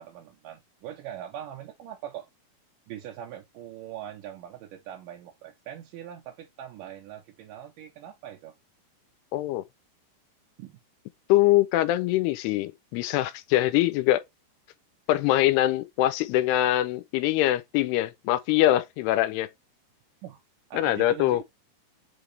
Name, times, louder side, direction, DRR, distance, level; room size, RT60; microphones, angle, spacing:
voice 1, 0.0-2.3 2.9-8.6 10.6-10.8 20.2-20.4 20.7-21.4, right 10 dB, 75° right, 2.0 m, -42 dB
voice 2, 9.3-9.6 11.3-14.2 15.1-19.5 20.7-21.4, left 15 dB, 90° left, 2.7 m, -23 dB
7.9 x 3.9 x 3.3 m
omnidirectional pair, 4.7 m